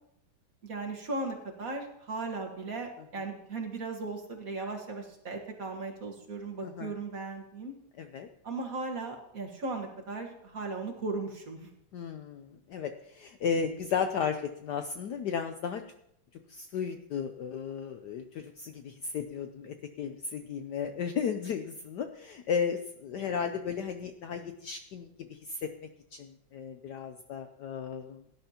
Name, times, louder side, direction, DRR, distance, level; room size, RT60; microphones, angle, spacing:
voice 1, 0.6-7.7 8.4-11.7 23.2-23.4, right 3 dB, 45° right, 1 dB, 1.8 m, -37 dB
voice 2, 6.6-6.9 8.0-8.3 11.9-15.8 16.5-25.7 26.1-28.2, left 6 dB, 70° left, 7 dB, 1.0 m, -34 dB
17.5 x 10.5 x 2.9 m, 0.75 s
omnidirectional pair, 2.3 m